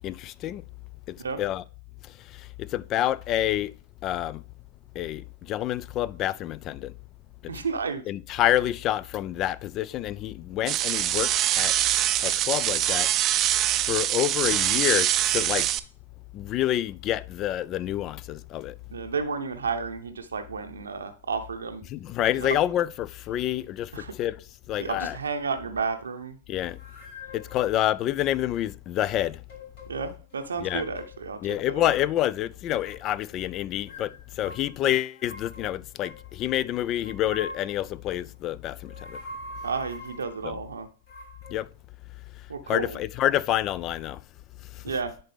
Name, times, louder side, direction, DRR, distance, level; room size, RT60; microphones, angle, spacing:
voice 1, 0.0-0.6 1.1-1.6 2.6-3.7 4.0-4.4 5.0-6.9 7.4-7.5 8.1-11.3 11.6-11.7 12.2-13.1 13.9-15.7 16.3-18.7 21.9-23.9 24.2-24.4 24.7-25.2 26.5-26.8 27.3-29.4 30.6-30.8 31.4-34.1 34.4-39.2 40.4-40.6 41.5-41.7 42.7-44.2, left 12 dB, 35° left, 0.3 m, -28 dB
voice 2, 7.5-8.0 18.9-21.9 22.4-22.6 23.9-24.1 24.8-26.4 29.9-31.4 31.7-31.9 39.6-40.9 42.5-43.0 44.8-45.1, right 5 dB, 80° right, 0.7 m, -32 dB
sound 1, 10.7-15.8, right 12 dB, 35° right, 0.5 m, -24 dB
sound 2, 26.7-27.8 28.9-29.9 30.2-31.2 31.5-32.1 32.8-33.3 33.9-36.6 37.0-37.9 38.7-40.5 41.1-41.5, left 1 dB, 60° left, 3.3 m, -44 dB
10.5 x 4.0 x 3.3 m
hypercardioid pair, 105°, 0 cm